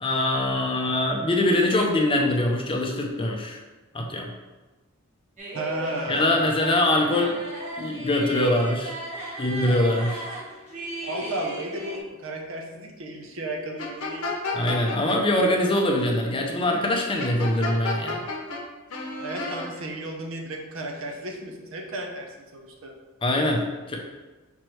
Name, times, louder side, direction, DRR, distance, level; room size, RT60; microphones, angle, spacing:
voice 1, 0.0-3.6 3.9-4.3 6.1-7.4 7.8-8.9 9.4-10.3 14.5-18.3 23.2-24.0, left 1 dB, 25° left, 1 dB, 0.5 m, -23 dB
sound 1, 5.4-12.0, right 1 dB, 35° right, 0.9 m, -36 dB
voice 2, 5.5-6.4 11.1-14.2 19.2-22.9, right 1 dB, 60° right, 1 dB, 0.7 m, -34 dB
sound 2, 13.8-15.2 17.2-18.6 18.9-19.7, left 3 dB, 80° left, 0.8 m, -31 dB
5.2 x 3.1 x 3.1 m, 1.2 s
head